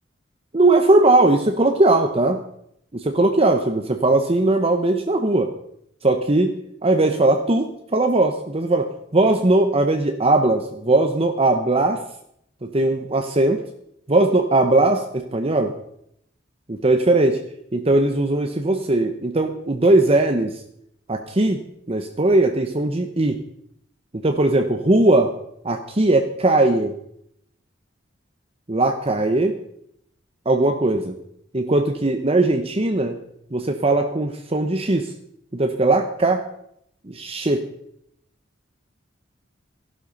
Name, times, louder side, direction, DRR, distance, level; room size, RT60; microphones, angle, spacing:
voice 1, 0.5-2.4 2.9-5.5 6.0-6.6 6.8-12.0 12.6-13.6 14.1-15.7 16.7-17.4 17.7-20.6 21.1-21.6 21.9-23.4 24.2-25.3 25.6-26.9 28.7-29.6 30.4-31.2 31.5-33.2 33.5-35.1 35.5-36.4 37.0-37.6, right 2 dB, 30° right, 5 dB, 1.0 m, -19 dB
15.5 x 12.0 x 5.4 m, 0.74 s
head